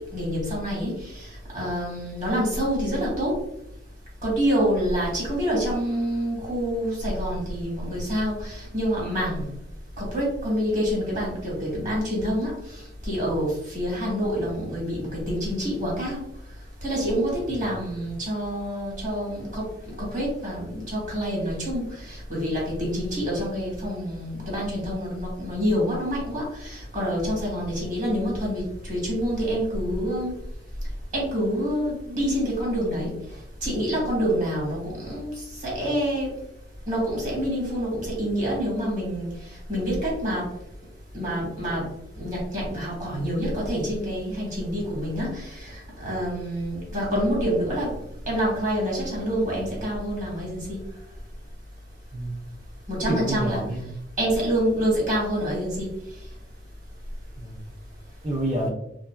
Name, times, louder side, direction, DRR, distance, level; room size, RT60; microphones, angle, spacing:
voice 1, 0.1-1.3 1.5-3.4 4.2-9.5 10.0-16.2 16.8-30.3 31.1-33.1 33.6-35.3 35.6-36.3 36.9-39.3 39.7-40.4 41.1-41.9 42.2-47.9 48.3-50.8 52.9-53.6 54.2-55.9, equal, 45° right, -4 dB, 1.4 m, -27 dB
voice 2, 52.1-52.4 53.0-53.9 57.4-57.6 58.2-58.7, right 1 dB, 25° right, -6 dB, 0.5 m, -28 dB
2.7 x 2.6 x 2.3 m, 0.77 s
head